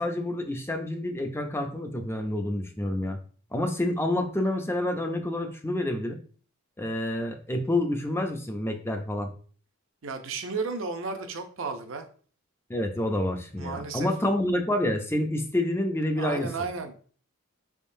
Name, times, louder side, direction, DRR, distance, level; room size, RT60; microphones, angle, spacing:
voice 1, 0.0-3.2 3.5-6.2 6.8-9.3 12.7-16.5, left 1 dB, 10° left, 5 dB, 0.5 m, -28 dB
voice 2, 10.0-12.0 13.6-14.1 16.2-16.9, right 4 dB, 65° right, 6 dB, 0.6 m, -33 dB
5.0 x 3.6 x 2.6 m, 0.43 s
head